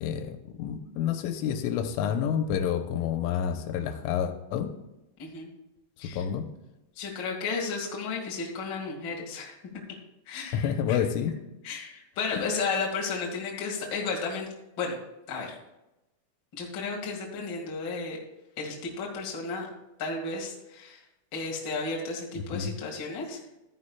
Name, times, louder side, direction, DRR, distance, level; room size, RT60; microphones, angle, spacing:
voice 1, 0.0-4.7 6.1-6.4 10.5-11.3 12.3-12.4 22.4-22.7, left 8 dB, 90° left, 7 dB, 3.3 m, -29 dB
voice 2, 6.9-9.5 10.2-11.0 11.6-14.5 14.8-15.0 15.3-15.5 16.6-18.2 18.6-19.7 20.0-21.0 21.3-23.4, left 4 dB, 55° left, -2 dB, 1.2 m, -33 dB
13.5 x 9.9 x 2.3 m, 0.97 s
omnidirectional pair, 5.6 m